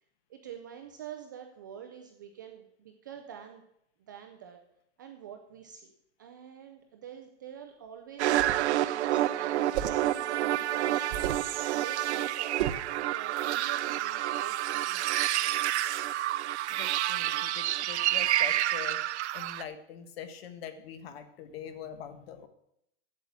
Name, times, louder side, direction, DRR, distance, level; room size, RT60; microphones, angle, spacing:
voice 1, 0.3-3.6 4.0-4.6 5.0-5.9 6.2-11.1 11.7-12.5 13.1-15.3, right 8 dB, 20° right, 4 dB, 0.3 m, -47 dB
sound 1, 8.2-8.7 9.7-10.1 11.1-11.5 12.6-12.9, right 11 dB, 40° right, 0.9 m, -33 dB
sound 2, 8.2-19.6, right 14 dB, 65° right, 0.6 m, -29 dB
voice 2, 16.7-19.0 19.3-22.5, left 8 dB, 55° left, 10 dB, 1.5 m, -43 dB
8.1 x 8.0 x 8.5 m, 0.77 s
supercardioid pair, 165°, 36 cm